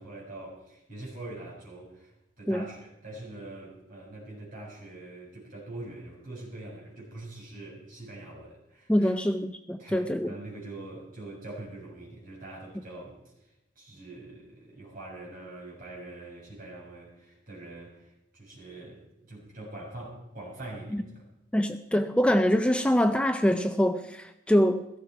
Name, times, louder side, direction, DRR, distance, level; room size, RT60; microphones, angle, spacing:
voice 1, 0.0-9.1 9.8-13.2 13.7-21.2, right 2 dB, 45° right, -3 dB, 6.6 m, -44 dB
voice 2, 8.9-10.3 20.9-21.0 21.5-25.0, equal, 5° left, 8 dB, 0.4 m, -24 dB
17.0 x 14.5 x 4.7 m, 0.89 s
head